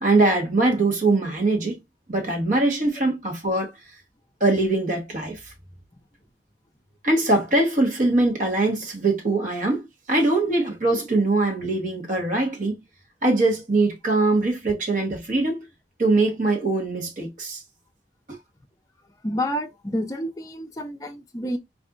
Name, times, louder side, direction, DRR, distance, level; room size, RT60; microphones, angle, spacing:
voice 1, 0.0-1.8 2.1-3.7 4.4-5.4 7.0-12.8 13.2-15.6 16.0-17.6 18.3-18.4, right 2 dB, 45° right, 1.2 m, -22 dB
voice 2, 19.2-21.6, equal, 20° left, 0.5 m, -29 dB
4.0 x 2.6 x 2.4 m
head